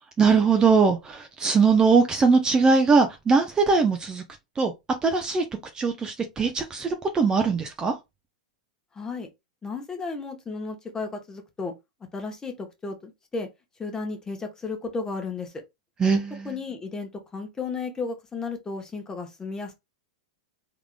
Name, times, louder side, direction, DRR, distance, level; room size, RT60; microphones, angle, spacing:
voice 1, 0.2-4.2 4.6-4.7 5.0-5.4 5.7-8.0 16.0-16.5, right 4 dB, 20° right, 0.6 m, -21 dB
voice 2, 8.9-9.3 9.6-11.7 12.1-13.5 13.8-15.6 16.4-19.7, left 4 dB, 15° left, 1.1 m, -34 dB
3.6 x 3.5 x 2.2 m
hypercardioid pair, 115°, 4 cm